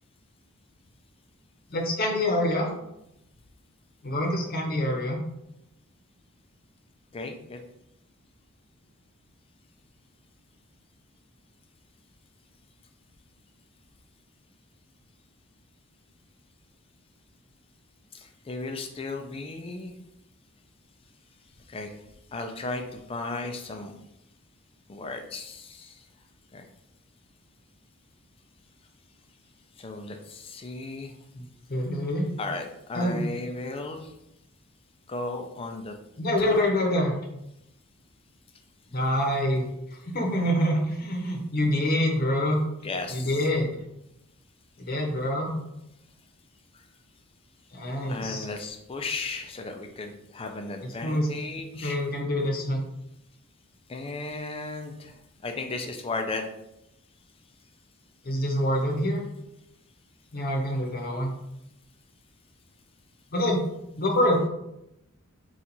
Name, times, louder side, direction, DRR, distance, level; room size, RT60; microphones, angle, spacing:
voice 1, 1.7-2.7 4.0-5.2 31.3-32.2 32.9-33.3 36.2-37.1 38.9-39.6 40.0-42.6 43.1-43.8 44.8-45.6 47.7-48.4 51.0-51.3 51.7-52.8 58.2-59.2 60.3-61.3 63.3-63.6 64.0-64.4, left 1 dB, 45° left, 0 dB, 0.8 m, -26 dB
voice 2, 7.1-7.6 18.1-19.9 21.7-21.9 22.3-23.9 24.9-26.0 26.5-26.7 29.8-31.1 32.4-34.1 35.1-35.9 36.4-36.7 42.8-43.4 48.1-52.0 53.9-55.1 55.4-56.5, left 3 dB, 25° left, 5 dB, 0.4 m, -35 dB
4.3 x 2.4 x 3.9 m, 0.85 s
head